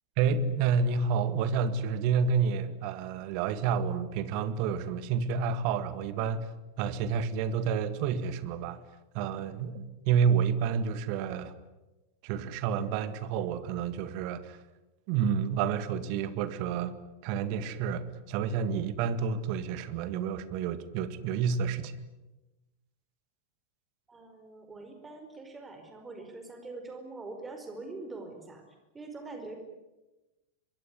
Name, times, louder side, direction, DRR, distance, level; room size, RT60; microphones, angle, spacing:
voice 1, 0.2-6.5 6.8-8.8 9.1-11.5 12.2-14.6 15.1-16.9 17.2-21.9, right 6 dB, 45° right, 13 dB, 1.9 m, -29 dB
voice 2, 24.1-28.6 28.9-29.6, right 3 dB, 15° right, 5 dB, 4.7 m, -43 dB
24.5 x 23.0 x 9.7 m, 1.1 s
figure-of-eight pair, 90°, 0 cm